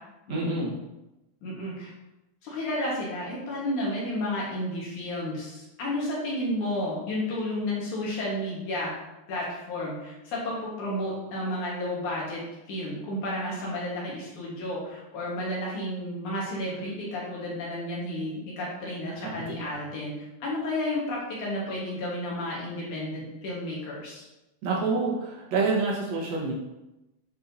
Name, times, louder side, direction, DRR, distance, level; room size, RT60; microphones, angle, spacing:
voice 1, 0.3-0.7 19.1-19.8 24.6-26.5, right 3 dB, 85° right, -5 dB, 1.5 m, -28 dB
voice 2, 1.4-1.9 2.4-8.9 9.3-20.1 20.4-24.2, left 1 dB, 60° left, -5 dB, 2.2 m, -32 dB
8.8 x 4.1 x 2.6 m, 0.96 s
omnidirectional pair, 4.9 m